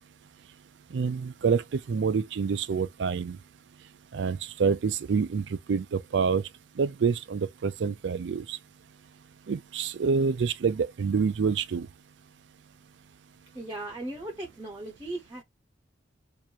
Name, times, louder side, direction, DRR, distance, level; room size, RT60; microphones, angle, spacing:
voice 1, 0.9-3.4 4.1-6.4 6.8-8.6 9.5-11.9, right 5 dB, 75° right, 0.4 m, -27 dB
voice 2, 13.5-15.4, right 2 dB, 15° right, 0.8 m, -37 dB
4.6 x 2.6 x 2.7 m
head